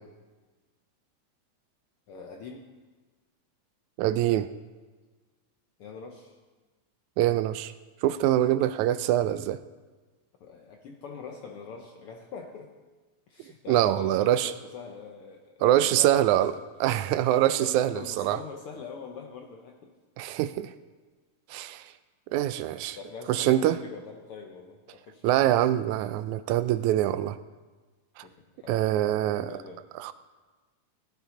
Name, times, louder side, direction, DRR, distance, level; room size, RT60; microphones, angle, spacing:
voice 1, 2.1-2.7 5.8-6.4 10.4-12.7 13.3-16.7 17.6-19.9 22.9-25.4 28.2-28.8 29.5-29.9, left 5 dB, 70° left, 3 dB, 1.4 m, -43 dB
voice 2, 4.0-4.5 7.2-7.7 8.0-9.6 13.7-14.5 15.6-18.4 20.2-20.7 21.5-21.8 22.3-23.0 23.3-23.8 25.2-27.4 28.2-28.3 28.7-29.6 30.0-30.1, right 13 dB, 85° right, 13 dB, 1.9 m, -24 dB
17.0 x 11.5 x 3.8 m, 1.3 s
omnidirectional pair, 3.4 m